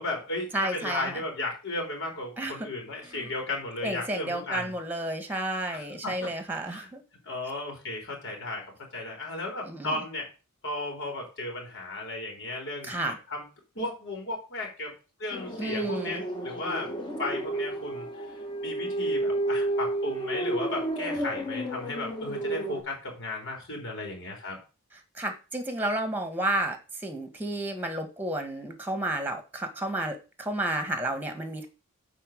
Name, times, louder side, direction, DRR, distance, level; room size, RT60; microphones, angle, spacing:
voice 1, 0.0-4.7 5.7-6.3 6.7-6.9 7.2-8.6 8.9-10.3 10.6-13.4 13.8-14.9 15.2-16.9 17.2-18.1 18.6-24.6, left 2 dB, 55° left, 1 dB, 3.7 m, -35 dB
voice 2, 0.5-1.2 2.4-2.7 3.0-3.3 3.8-7.0 9.6-9.9 12.8-13.2 15.6-16.2 25.1-26.8 27.0-31.7, right 1 dB, 10° right, 7 dB, 1.6 m, -31 dB
sound 1, 15.3-22.8, right 1 dB, 20° left, 1.7 m, -31 dB
9.3 x 4.0 x 6.5 m, 0.32 s
head